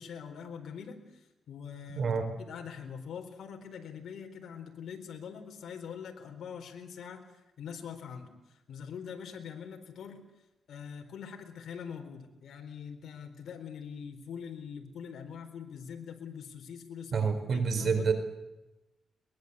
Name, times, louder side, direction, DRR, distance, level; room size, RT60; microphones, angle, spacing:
voice 1, 0.0-7.2 7.6-10.2 10.7-18.1, left 7 dB, 80° left, 4 dB, 4.2 m, -43 dB
voice 2, 1.9-2.3 17.1-18.1, right 5 dB, 60° right, 9 dB, 4.4 m, -28 dB
23.0 x 21.5 x 8.2 m, 1.0 s
cardioid pair, 95°, 0 cm